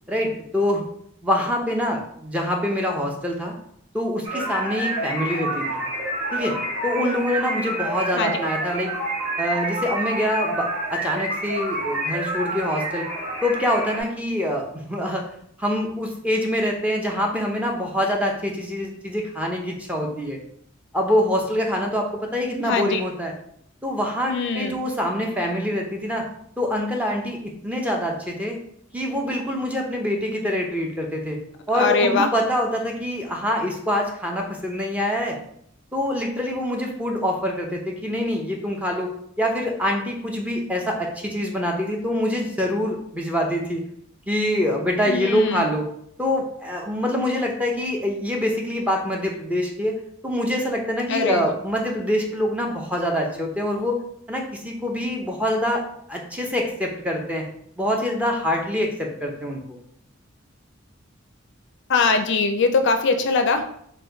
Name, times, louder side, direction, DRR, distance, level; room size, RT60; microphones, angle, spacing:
voice 1, 0.1-0.8 1.2-3.5 3.9-5.8 6.3-6.5 6.8-8.9 9.4-13.1 13.4-15.2 15.6-20.4 20.9-23.3 23.8-26.2 26.6-27.4 27.6-28.6 28.9-31.4 31.7-35.4 35.9-39.1 39.4-43.8 44.3-45.9 46.2-49.9 50.2-54.0 54.3-55.8 56.1-57.5 57.8-59.8, left 1 dB, 5° right, 0 dB, 0.6 m, -25 dB
sound 1, 4.2-14.0, right 1 dB, 40° right, 1.5 m, -28 dB
voice 2, 22.6-23.0 24.3-24.7 31.7-32.3 45.1-45.7 51.1-51.5 61.9-63.8, left 4 dB, 60° left, 7 dB, 0.4 m, -21 dB
4.2 x 2.2 x 3.7 m, 0.67 s
head